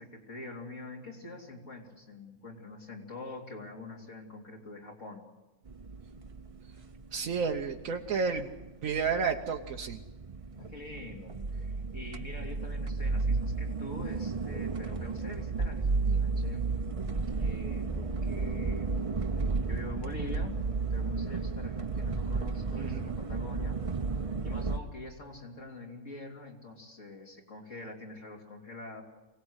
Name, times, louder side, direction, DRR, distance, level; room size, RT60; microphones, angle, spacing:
voice 1, 0.0-5.2 10.6-16.7 17.4-18.9 19.7-20.6 20.9-23.8 24.4-29.0, left 2 dB, 70° left, 0 dB, 3.7 m, -45 dB
sound 1, 5.7-24.8, right 4 dB, 30° right, 0.7 m, -33 dB
voice 2, 7.1-8.5 8.8-10.0 22.8-23.1, right 5 dB, 90° right, 2 dB, 1.4 m, -31 dB
24.5 x 18.5 x 8.1 m, 1.1 s
omnidirectional pair, 1.4 m